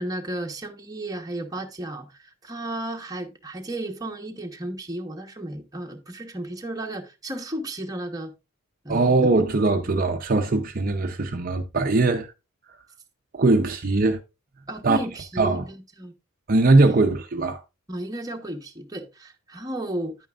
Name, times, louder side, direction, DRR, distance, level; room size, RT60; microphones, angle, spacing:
voice 1, 0.0-8.3 8.8-9.2 9.9-10.0 14.7-16.1 16.8-17.0 17.9-20.1, right 1 dB, 15° right, 1.1 m, -33 dB
voice 2, 8.9-12.3 13.3-14.2 14.8-15.0 15.4-15.7 16.5-17.6, right 3 dB, 40° right, 0.7 m, -20 dB
10.0 x 9.0 x 2.4 m
head